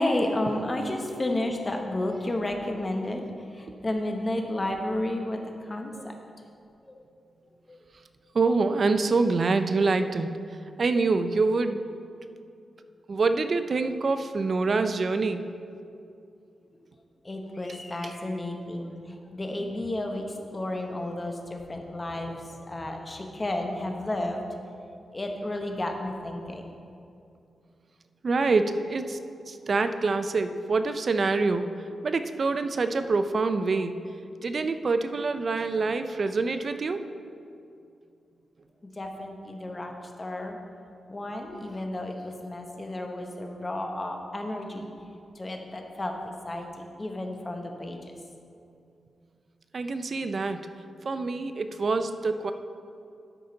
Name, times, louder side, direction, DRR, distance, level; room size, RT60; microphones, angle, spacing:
voice 1, 0.0-3.3 3.6-5.4 5.7-6.1 7.7-7.8 17.2-18.9 19.3-20.3 20.5-24.4 25.1-26.6 39.0-39.9 40.2-40.6 41.1-44.9 45.4-46.7 47.0-48.1, left 1 dB, 25° left, 3 dB, 1.0 m, -32 dB
voice 2, 8.3-10.3 10.8-11.8 13.1-15.4 18.0-18.1 19.6-19.7 28.2-29.2 29.5-31.7 32.0-34.0 34.4-37.1 49.7-50.6 51.0-52.5, right 3 dB, 50° right, 9 dB, 0.4 m, -26 dB
12.5 x 5.1 x 3.9 m, 2.5 s
cardioid pair, 90°, 0 cm